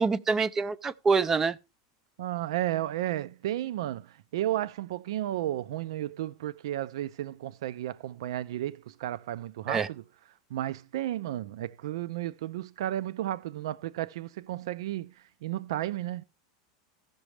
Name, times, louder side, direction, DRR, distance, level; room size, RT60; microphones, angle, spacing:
voice 1, 0.0-1.6 9.7-9.9, right 4 dB, 15° right, 0.4 m, -26 dB
voice 2, 2.2-10.0 10.5-16.2, right 13 dB, 80° right, 0.5 m, -33 dB
15.5 x 6.1 x 3.2 m
supercardioid pair, 155°, 3 cm